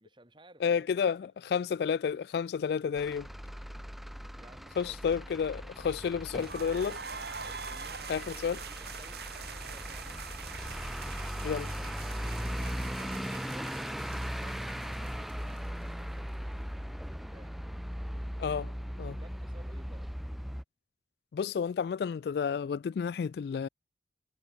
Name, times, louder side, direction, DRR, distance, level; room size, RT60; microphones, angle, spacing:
voice 1, 0.0-1.3 4.3-5.2 5.6-6.1 7.4-10.6 12.3-17.6 19.1-20.1, right 1 dB, 25° right, 4.4 m, -58 dB
voice 2, 0.6-3.3 4.8-7.0 8.1-8.6 11.4-11.7 18.4-18.7 19.0-19.1 21.3-23.7, left 6 dB, 65° left, 0.3 m, -31 dB
Truck / Idling, 2.9-20.6, equal, ahead, 0.4 m, -38 dB
sound 1, 6.4-16.2, right 6 dB, 65° right, 3.4 m, -44 dB
head